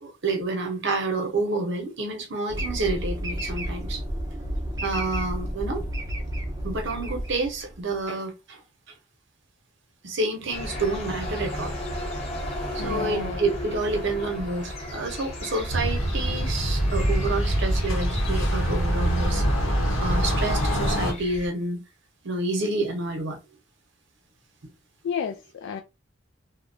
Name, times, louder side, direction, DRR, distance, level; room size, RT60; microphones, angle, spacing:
voice 1, 0.0-4.0 4.8-5.8 6.6-8.6 10.0-11.7 12.7-21.8 22.2-23.4, right 2 dB, 65° right, 0.8 m, -29 dB
sound 1, 2.5-7.9, equal, 20° right, 0.5 m, -31 dB
sound 2, 10.5-21.5, left 1 dB, 30° left, 0.9 m, -35 dB
voice 2, 12.8-13.4 25.0-25.8, left 7 dB, 70° left, 0.3 m, -31 dB
sound 3, 15.7-21.1, equal, 90° left, 0.9 m, -24 dB
2.8 x 2.1 x 2.6 m
head